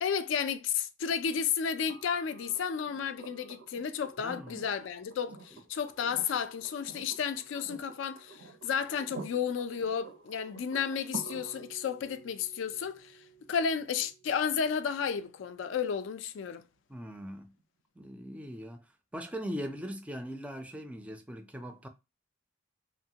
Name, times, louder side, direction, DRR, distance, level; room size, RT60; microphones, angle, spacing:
voice 1, 0.0-13.1 13.5-16.6, left 7 dB, 65° left, 0.3 m, -32 dB
sound 1, 1.9-15.8 17.6-17.7, right 4 dB, 75° right, 0.6 m, -50 dB
voice 2, 4.2-4.5 16.9-17.5 18.0-18.8 19.1-21.9, equal, 5° right, 0.3 m, -40 dB
3.0 x 2.1 x 2.7 m
head